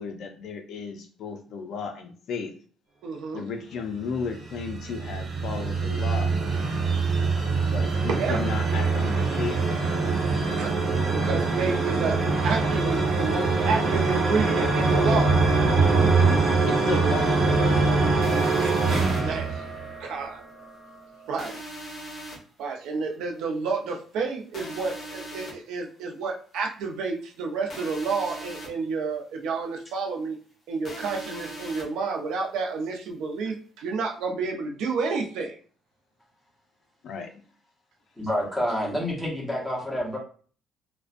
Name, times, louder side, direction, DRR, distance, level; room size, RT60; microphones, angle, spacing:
voice 1, 0.0-2.5 3.3-6.3 7.5-9.9 15.9-17.8 37.0-37.4, left 5 dB, 50° left, 6 dB, 0.3 m, -34 dB
voice 2, 3.0-3.5 8.1-8.4 10.6-15.4 18.1-18.8 19.0-19.6 20.0-20.4 21.3-21.6 22.6-30.4 30.7-35.5, right 4 dB, 75° right, 2 dB, 0.5 m, -30 dB
sound 1, 4.2-20.3, right 3 dB, 40° right, 0.9 m, -23 dB
sound 2, 18.2-19.2 21.4-22.4 24.5-25.5 27.7-28.7 30.8-31.8, equal, 35° left, 0.7 m, -39 dB
voice 3, 38.2-40.2, equal, ahead, -5 dB, 0.8 m, -28 dB
2.4 x 2.1 x 2.4 m, 0.42 s
cardioid pair, 175°, 0 cm